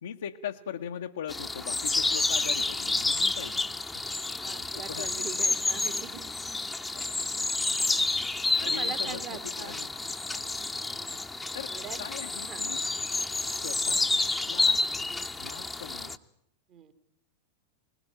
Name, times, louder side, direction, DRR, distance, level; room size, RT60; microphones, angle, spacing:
voice 1, 0.0-5.3 6.9-7.0 7.6-7.7 8.1-8.2 8.6-9.9 10.3-10.5 11.5-12.8 13.4-14.0 14.5-14.8 15.4-16.2, left 9 dB, 65° left, 2 dB, 0.8 m, -41 dB
sound 1, 1.3-16.2, left 3 dB, 5° left, 1.0 m, -29 dB
voice 2, 4.4-6.2 8.6-9.8 10.5-11.2 11.7-12.0 12.4-12.6 16.7-16.9, right 8 dB, 35° right, 10 dB, 1.9 m, -42 dB
21.0 x 20.5 x 8.7 m, 0.76 s
figure-of-eight pair, 90°, 0 cm